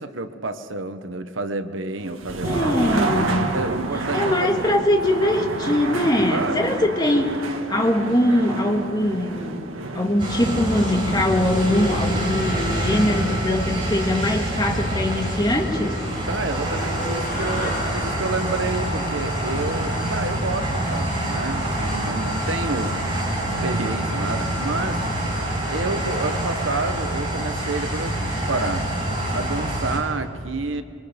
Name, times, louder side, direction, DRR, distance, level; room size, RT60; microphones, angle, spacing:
voice 1, 0.0-2.8 3.4-4.8 6.3-6.6 16.3-23.0 23.6-25.0 25.7-28.9 29.3-30.8, right 3 dB, 70° right, 9 dB, 1.2 m, -29 dB
sound 1, 2.0-13.9, right 3 dB, 90° right, 1.6 m, -30 dB
voice 2, 2.4-3.5 4.1-9.6 9.9-16.0, left 1 dB, 20° left, 2 dB, 1.9 m, -22 dB
sound 2, 10.2-30.0, right 1 dB, 25° right, 6.4 m, -26 dB
sound 3, 16.1-20.8, left 2 dB, 45° left, 7.4 m, -35 dB
26.0 x 23.5 x 5.2 m, 2.4 s
head